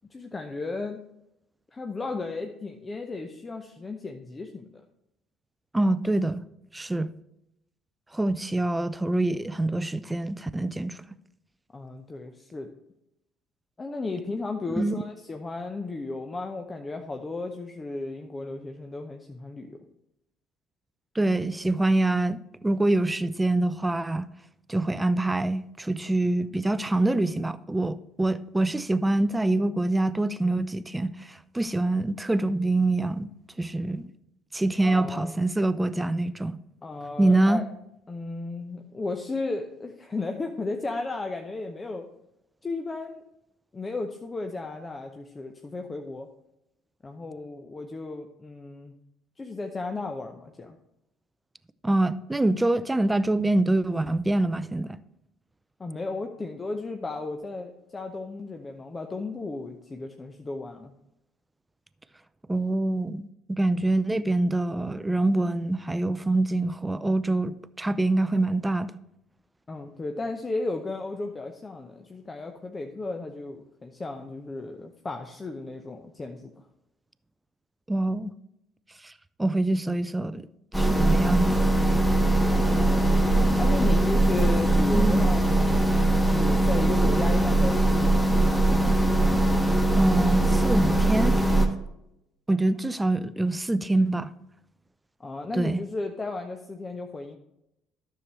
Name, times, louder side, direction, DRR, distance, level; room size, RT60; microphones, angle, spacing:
voice 1, 0.1-1.0 1.7-4.8 11.7-12.7 13.8-19.8 34.8-35.4 36.8-37.7 38.1-42.1 42.6-43.2 43.7-46.3 47.0-49.0 49.4-50.8 55.8-60.9 69.7-76.5 82.7-83.3 83.6-85.8 86.1-88.3 95.2-97.4, left 3 dB, 25° left, 0.8 m, -34 dB
voice 2, 5.7-6.4 6.7-7.1 8.1-11.0 14.7-14.9 21.2-24.3 24.7-33.3 33.6-34.0 34.5-36.6 37.2-37.6 51.8-55.0 62.5-68.9 77.9-78.3 79.4-80.5 80.7-81.7 84.9-85.2 89.9-91.4 92.5-94.3 95.5-95.8, right 2 dB, 10° right, 0.5 m, -25 dB
sound 1, 80.7-91.7, right 1 dB, 10° left, 1.3 m, -21 dB
12.5 x 6.7 x 3.2 m
figure-of-eight pair, 55°, 0 cm